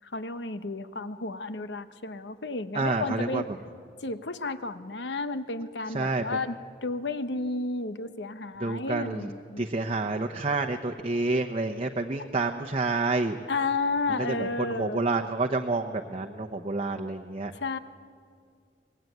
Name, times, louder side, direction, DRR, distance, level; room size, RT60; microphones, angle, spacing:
voice 1, 0.0-3.5 4.0-6.5 6.8-9.7 13.5-15.0 17.5-17.8, left 3 dB, 85° left, 11 dB, 1.1 m, -32 dB
voice 2, 2.7-3.4 5.9-6.2 8.6-9.3 9.6-13.4 14.2-17.5, right 3 dB, 35° right, 2 dB, 0.9 m, -28 dB
25.0 x 20.0 x 9.3 m, 2.2 s
head